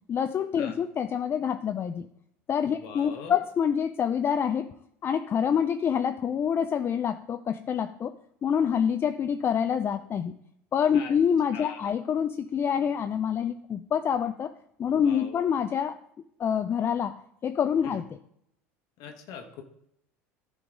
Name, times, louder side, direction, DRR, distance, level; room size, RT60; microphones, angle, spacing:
voice 1, 0.1-2.1 2.5-4.7 5.0-8.1 8.4-10.3 10.7-14.5 14.8-16.0 16.4-17.1 17.4-18.2, left 8 dB, 35° left, 10 dB, 0.4 m, -26 dB
voice 2, 2.7-3.4 10.9-11.1 11.5-11.9 15.0-15.4 17.8-18.0 19.0-19.6, left 6 dB, 60° left, 5 dB, 1.1 m, -42 dB
10.5 x 3.8 x 5.0 m, 0.73 s
hypercardioid pair, 80°, 7 cm